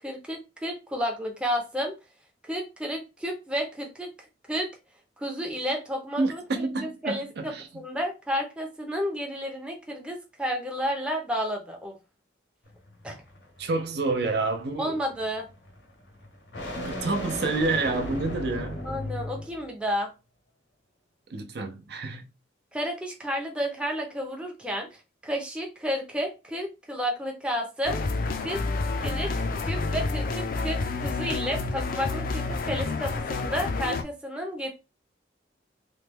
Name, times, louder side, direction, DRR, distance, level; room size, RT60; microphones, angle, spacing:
voice 1, 0.0-1.9 2.5-4.1 4.5-4.7 5.2-12.0 13.0-13.2 14.8-15.5 18.8-20.1 22.7-24.9 25.2-28.0 28.4-28.6 29.0-29.3 29.6-34.7, equal, 5° right, 0.6 m, -31 dB
voice 2, 6.2-7.7 13.6-15.0 16.8-18.8 21.3-22.2, right 3 dB, 60° right, 0.6 m, -28 dB
sound 1, 12.7-19.7, left 1 dB, 70° left, 0.8 m, -37 dB
sound 2, 27.8-34.0, left 3 dB, 50° left, 0.4 m, -29 dB
3.1 x 2.2 x 3.4 m
head